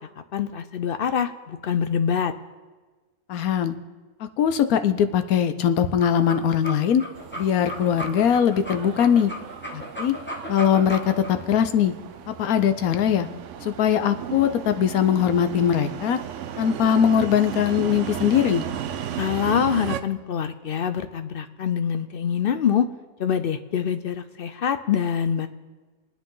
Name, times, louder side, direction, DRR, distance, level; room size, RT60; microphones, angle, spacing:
voice 1, 0.3-2.3 19.2-22.9 23.2-25.5, left 8 dB, 60° left, 10 dB, 0.6 m, -25 dB
voice 2, 3.3-3.7 4.4-7.0 7.4-9.3 9.7-10.2 10.5-11.9 12.3-13.3 13.6-16.2 16.6-18.6, left 8 dB, 90° left, 10 dB, 1.2 m, -21 dB
sound 1, 5.8-11.3, equal, 10° left, 1.2 m, -35 dB
sound 2, 7.1-20.0, right 10 dB, 65° right, 0.9 m, -35 dB
25.5 x 9.7 x 3.8 m, 1.3 s
omnidirectional pair, 1.5 m